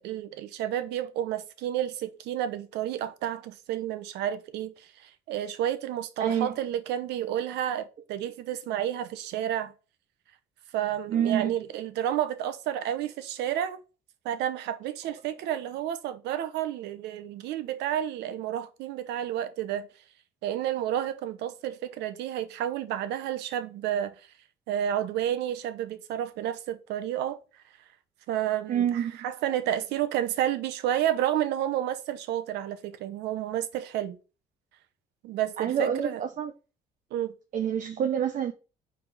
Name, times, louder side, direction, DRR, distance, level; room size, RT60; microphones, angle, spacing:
voice 1, 0.0-9.7 10.7-13.8 14.2-19.9 20.4-24.2 24.7-27.4 28.3-34.2 35.2-36.2 37.1-37.3, right 11 dB, 85° right, 0.8 m, -30 dB
voice 2, 6.2-6.5 11.1-11.5 28.7-29.2 35.6-36.5 37.5-38.5, right 8 dB, 50° right, 0.7 m, -27 dB
4.8 x 3.5 x 5.5 m
cardioid pair, 110°, 17 cm